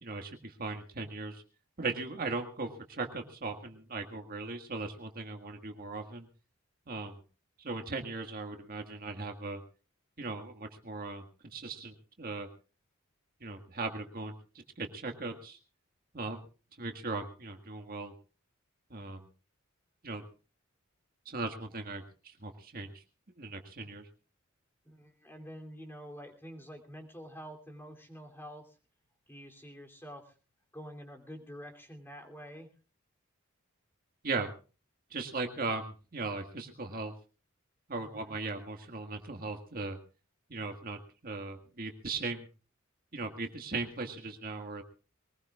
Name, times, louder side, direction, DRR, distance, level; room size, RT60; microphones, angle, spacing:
voice 1, 0.0-1.4 1.8-6.3 6.9-7.2 7.6-9.6 10.2-12.5 13.4-14.3 14.8-15.6 16.1-16.4 16.8-18.1 18.9-19.3 20.0-20.2 21.3-23.0 23.4-24.1 34.2-34.5 35.1-37.1 37.9-40.0 40.5-42.5 43.1-44.8, right 3 dB, 45° right, 5 dB, 1.7 m, -38 dB
voice 2, 24.8-28.7 29.3-30.3 30.7-32.7 38.0-38.4, equal, 10° left, 3 dB, 3.0 m, -47 dB
22.5 x 19.5 x 2.4 m, 0.35 s
head